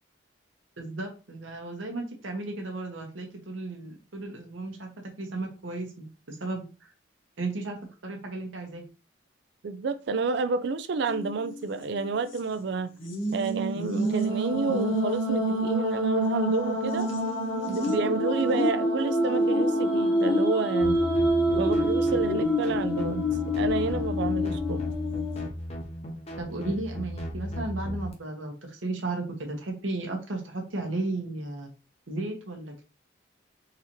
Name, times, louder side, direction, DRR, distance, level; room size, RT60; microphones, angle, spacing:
voice 1, 0.8-4.9 5.2-6.6 7.4-7.8 8.0-8.8 26.4-31.7 32.1-32.8, right 2 dB, 80° right, 1.1 m, -34 dB
voice 2, 9.6-13.0 13.3-17.1 17.7-21.0 21.6-23.3 23.6-24.8, right 4 dB, 60° right, 0.4 m, -30 dB
sound 1, 11.0-11.6 11.9-12.0 13.0-25.5, equal, 75° left, 0.8 m, -27 dB
sound 2, 20.8-28.1, equal, 35° left, 0.7 m, -35 dB
4.0 x 2.7 x 3.0 m
head